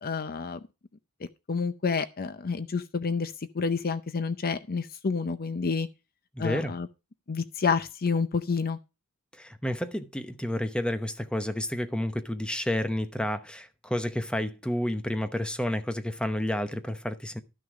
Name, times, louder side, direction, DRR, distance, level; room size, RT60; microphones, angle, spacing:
voice 1, 0.0-0.6 1.5-5.9 6.4-6.9 7.3-8.8, left 5 dB, 45° left, 0.6 m, -29 dB
voice 2, 6.3-6.7 9.3-17.4, left 1 dB, 5° left, 0.9 m, -30 dB
13.0 x 6.4 x 4.9 m
head